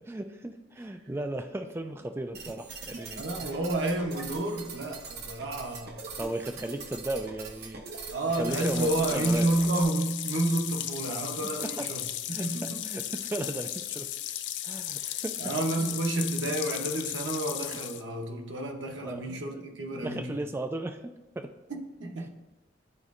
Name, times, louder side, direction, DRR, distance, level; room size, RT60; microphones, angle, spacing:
voice 1, 0.1-3.5 6.2-9.5 11.6-11.9 12.3-14.1 14.6-15.4 15.8-16.0 19.0-19.6 19.9-21.5, right 1 dB, 15° right, 0.3 m, -36 dB
sound 1, 2.3-9.8, right 4 dB, 60° right, 0.7 m, -42 dB
voice 2, 3.2-6.0 8.1-12.9 15.0-20.4 22.0-22.3, right 2 dB, 90° right, 0.9 m, -30 dB
sound 2, 8.5-18.0, left 12 dB, 75° left, 0.4 m, -35 dB
11.0 x 4.0 x 2.5 m
head